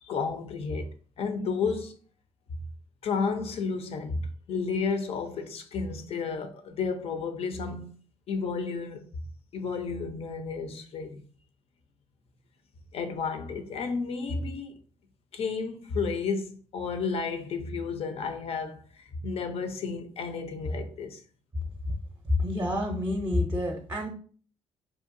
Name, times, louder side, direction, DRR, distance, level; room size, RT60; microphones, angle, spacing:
voice 1, 0.0-0.9 1.2-2.0 3.0-8.0 8.3-9.1 9.5-11.2 12.9-14.8 15.3-21.2, left 4 dB, 60° left, 0.5 m, -32 dB
voice 2, 22.4-24.1, left 1 dB, 25° right, 0.5 m, -28 dB
2.7 x 2.2 x 2.5 m
cardioid pair, 75°, 12 cm